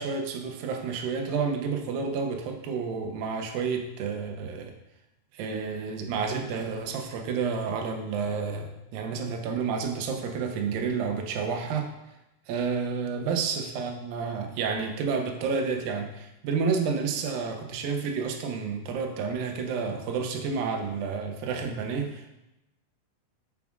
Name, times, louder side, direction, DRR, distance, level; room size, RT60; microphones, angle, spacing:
voice 1, 0.0-4.7 5.3-11.9 12.5-22.3, right 5 dB, 80° right, 4 dB, 2.3 m, -30 dB
7.0 x 6.1 x 2.4 m, 0.93 s
omnidirectional pair, 4.2 m